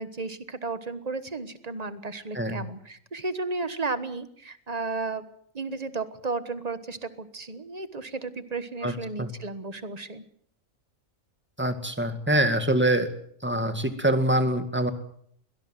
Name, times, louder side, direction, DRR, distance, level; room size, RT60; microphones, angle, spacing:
voice 1, 0.0-5.2 5.5-10.2, right 3 dB, 30° right, 12 dB, 1.3 m, -33 dB
voice 2, 11.6-13.1 13.4-14.9, right 1 dB, 10° right, 8 dB, 1.9 m, -24 dB
22.5 x 18.0 x 7.7 m, 0.65 s
omnidirectional pair, 1.4 m